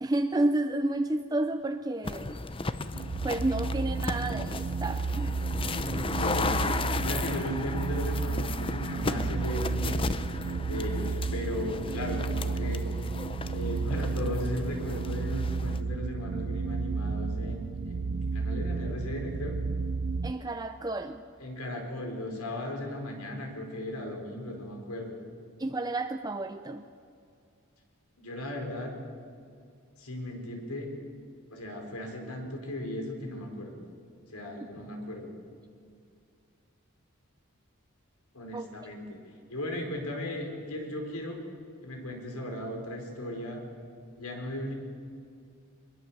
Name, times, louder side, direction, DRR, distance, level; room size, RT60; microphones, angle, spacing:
voice 1, 0.0-2.4 3.2-5.3 20.2-21.2 25.6-26.8 34.6-34.7 38.5-38.7, right 2 dB, 15° right, 8 dB, 0.5 m, -30 dB
sound 1, 2.0-15.8, left 3 dB, 25° left, 0.7 m, -35 dB
sound 2, 2.9-20.3, right 4 dB, 65° right, 0.5 m, -32 dB
voice 2, 6.2-10.0 10.6-12.8 13.5-19.6 21.4-25.2 28.2-28.9 30.0-30.9 31.5-33.8 34.3-35.3 38.3-39.2 39.5-41.4 41.8-43.6 44.2-44.7, left 1 dB, 80° left, 3 dB, 4.6 m, -36 dB
23.0 x 21.5 x 7.4 m, 2.4 s
head